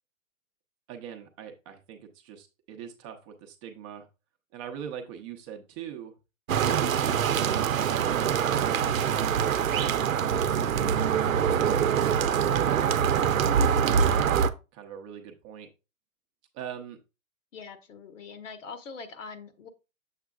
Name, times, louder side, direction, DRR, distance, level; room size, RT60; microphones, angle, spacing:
voice 1, 0.9-4.1 4.5-6.1 6.9-7.3 8.3-13.4 13.8-14.5 14.7-15.7 16.5-17.0, right 8 dB, 25° right, 4 dB, 0.7 m, -43 dB
sound 1, 6.5-14.5, right 8 dB, 85° right, 0.7 m, -24 dB
voice 2, 17.5-19.7, left 5 dB, 65° left, 8 dB, 1.3 m, -43 dB
7.3 x 6.4 x 2.3 m, 0.28 s
hypercardioid pair, 140°, 39 cm